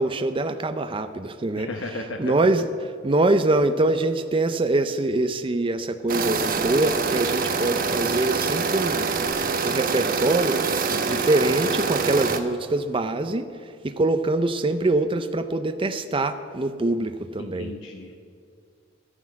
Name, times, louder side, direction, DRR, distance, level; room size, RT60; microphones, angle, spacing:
voice 1, 0.0-2.7 3.0-9.1 9.6-10.6 11.1-17.7, right 2 dB, 30° right, 9 dB, 0.5 m, -24 dB
voice 2, 1.5-2.2 10.9-11.2 17.4-18.2, left 2 dB, 85° left, 3 dB, 1.0 m, -35 dB
sound 1, 6.1-12.4, right 5 dB, 50° right, 0.9 m, -25 dB
13.0 x 9.8 x 7.4 m, 2.2 s
head